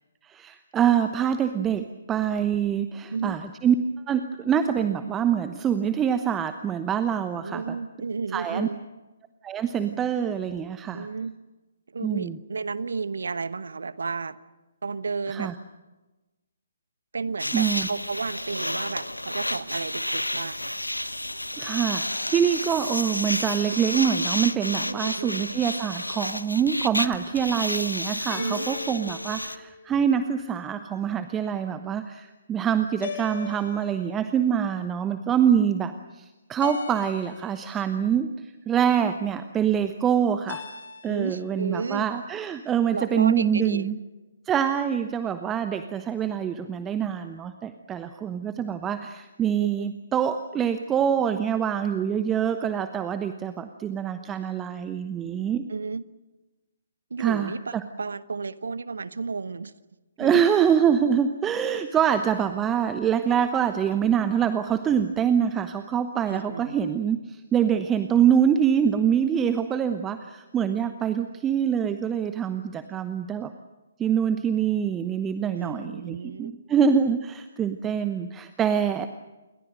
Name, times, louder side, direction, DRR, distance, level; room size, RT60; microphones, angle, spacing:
voice 1, 0.2-3.7 4.1-7.6 8.3-8.7 9.4-11.1 12.0-12.4 15.3-15.5 17.5-17.9 21.6-40.6 41.0-44.0 44.5-55.6 57.2-57.8 60.2-73.5 74.0-79.1, right 8 dB, 15° right, 10 dB, 1.0 m, -25 dB
voice 2, 7.4-8.8 10.9-11.4 11.9-14.4 14.8-15.5 17.1-20.8 24.9-25.4 28.4-28.7 41.1-42.1 42.9-43.9 49.6-49.9 55.7-56.0 57.1-59.7 60.2-60.4 66.3-66.8 75.6-76.5, right 4 dB, 60° right, 15 dB, 1.1 m, -32 dB
sound 1, 17.4-29.6, left 1 dB, 85° left, 1.2 m, -31 dB
sound 2, 28.3-30.3 33.0-34.4 36.6-37.8 40.5-41.5, left 7 dB, 45° left, 3.0 m, -40 dB
29.0 x 23.0 x 6.4 m, 1.1 s
figure-of-eight pair, 135°, 0 cm